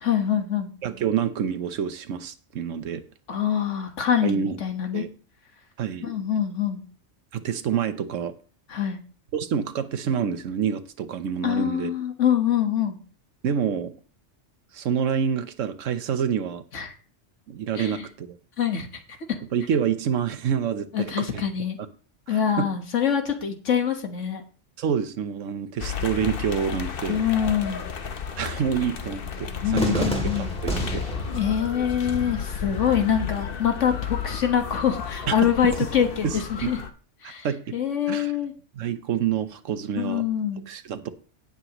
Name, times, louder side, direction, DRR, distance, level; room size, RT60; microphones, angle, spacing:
voice 1, 0.0-0.7 3.3-5.0 6.0-6.8 8.7-9.0 11.4-13.0 16.7-16.9 17.8-18.0 18.6-19.2 20.9-21.8 22.3-24.4 27.1-27.8 29.6-30.5 31.3-36.8 37.2-37.5 37.7-38.5 40.0-40.7, left 9 dB, 75° left, 5 dB, 1.8 m, -25 dB
voice 2, 0.8-3.0 4.2-4.6 4.9-5.1 5.8-6.1 7.3-8.3 9.3-11.9 13.4-13.9 14.7-16.6 17.5-18.3 19.5-21.4 22.3-22.7 24.8-27.2 28.4-31.0 35.3-35.4 35.8-35.9 36.2-36.7 37.2-37.7 38.1-38.3 38.7-40.2 40.7-41.1, right 7 dB, 90° right, 11 dB, 1.2 m, -27 dB
sound 1, 25.8-36.9, left 7 dB, 50° left, 1.0 m, -33 dB
Cheering / Fireworks, 29.7-35.7, equal, 5° left, 2.6 m, -34 dB
17.5 x 7.0 x 3.0 m, 0.39 s
omnidirectional pair, 1.3 m